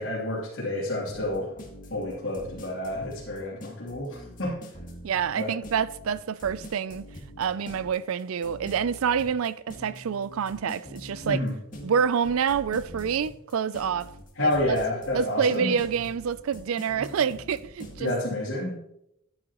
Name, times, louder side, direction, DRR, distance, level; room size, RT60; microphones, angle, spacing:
voice 1, 0.0-1.5 1.9-4.6 5.3-5.5 11.2-11.5 14.4-15.7 18.0-18.8, left 1 dB, 70° left, 3.0 m, -29 dB
sound 1, 1.1-18.1, equal, 40° left, 1.8 m, -44 dB
voice 2, 5.0-7.0 7.4-11.4 11.8-14.1 14.4-14.8 15.1-18.1, right 7 dB, 75° right, 0.4 m, -27 dB
11.5 x 8.8 x 3.0 m
head